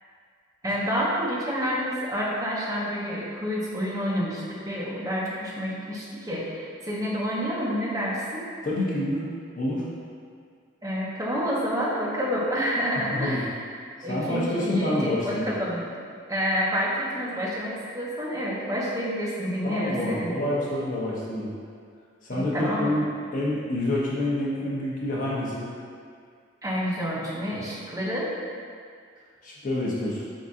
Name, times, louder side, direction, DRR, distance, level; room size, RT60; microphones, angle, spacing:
voice 1, 0.6-8.5 10.8-13.5 14.0-15.9 16.3-20.3 22.3-22.9 26.6-28.3, equal, 15° right, -6 dB, 0.6 m, -28 dB
voice 2, 8.6-9.3 9.5-9.8 13.1-13.4 14.1-15.5 19.6-21.5 22.2-25.7 29.4-30.2, left 1 dB, 45° left, -5 dB, 0.7 m, -27 dB
3.8 x 3.6 x 2.6 m, 2.2 s
head